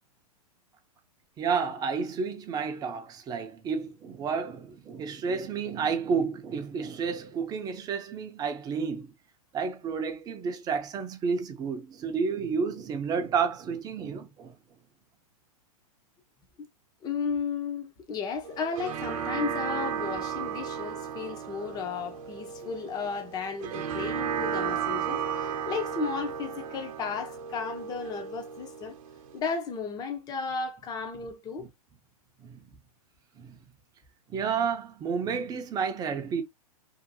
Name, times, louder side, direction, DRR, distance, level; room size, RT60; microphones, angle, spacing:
voice 1, 1.4-9.1 9.5-14.5 22.6-22.7 31.6-31.7 32.4-32.6 33.4-33.6 34.3-36.4, right 6 dB, 20° right, 0.6 m, -31 dB
voice 2, 17.0-29.0 29.3-31.7, left 5 dB, 20° left, 0.6 m, -34 dB
sound 1, 18.4-29.4, right 7 dB, 60° right, 0.8 m, -34 dB
2.7 x 2.5 x 2.6 m
hypercardioid pair, 130°, 20 cm